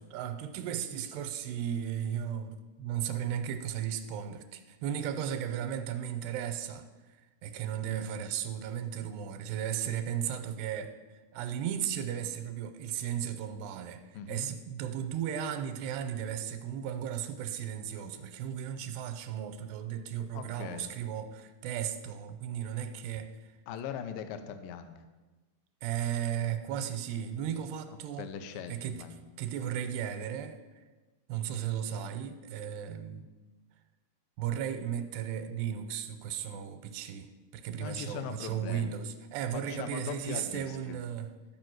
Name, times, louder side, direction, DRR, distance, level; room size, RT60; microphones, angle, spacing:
voice 1, 0.1-7.2 7.4-23.5 25.8-28.3 28.7-29.1 29.4-30.8 31.3-33.3 34.4-41.3, right 9 dB, 85° right, 8 dB, 2.7 m, -35 dB
voice 2, 14.1-14.5 20.3-20.9 23.7-25.0 28.2-29.1 37.8-38.9 39.5-41.0, left 8 dB, 75° left, 8 dB, 2.2 m, -40 dB
13.0 x 5.2 x 7.7 m, 1.2 s
omnidirectional pair, 4.8 m